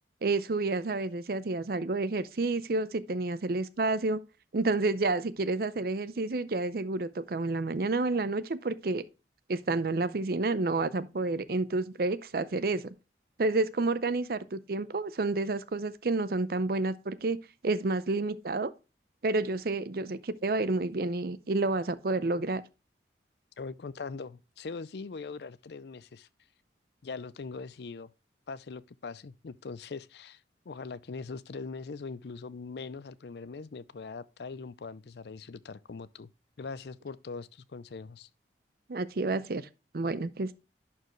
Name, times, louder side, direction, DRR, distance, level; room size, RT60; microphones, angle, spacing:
voice 1, 0.2-4.2 4.5-9.0 9.5-12.9 13.4-17.4 17.6-18.7 19.2-22.6 38.9-39.7 39.9-40.5, right 3 dB, 55° right, 0.5 m, -29 dB
voice 2, 23.6-26.3 27.0-28.1 28.5-36.3 36.6-38.3, left 4 dB, 65° left, 0.5 m, -41 dB
11.0 x 4.6 x 3.1 m
head